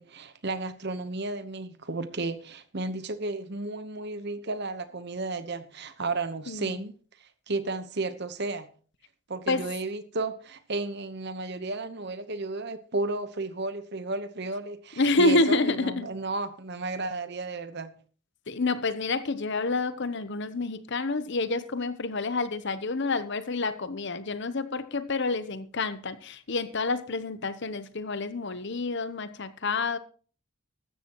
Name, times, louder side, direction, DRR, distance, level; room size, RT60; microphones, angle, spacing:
voice 1, 0.0-6.9 7.2-8.7 9.3-17.9, right 3 dB, 50° right, 1.1 m, -33 dB
voice 2, 6.5-6.8 9.5-9.7 15.0-16.1 18.5-30.0, left 3 dB, 50° left, 0.8 m, -28 dB
14.5 x 13.0 x 3.0 m
head